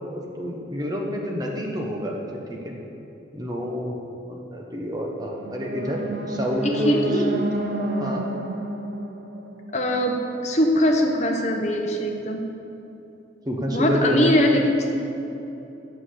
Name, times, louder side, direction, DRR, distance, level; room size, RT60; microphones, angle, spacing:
voice 1, 0.0-2.2 2.5-2.7 3.3-4.0 4.3-6.0 6.3-7.2 8.0-8.3 13.5-14.4, equal, 20° right, -1 dB, 0.9 m, -28 dB
sound 1, 5.2-10.3, right 1 dB, 60° right, 0.7 m, -30 dB
voice 2, 6.6-7.3 9.7-10.2 10.4-12.4 13.7-15.0, equal, 35° left, 2 dB, 0.8 m, -21 dB
7.7 x 5.9 x 6.5 m, 2.9 s
head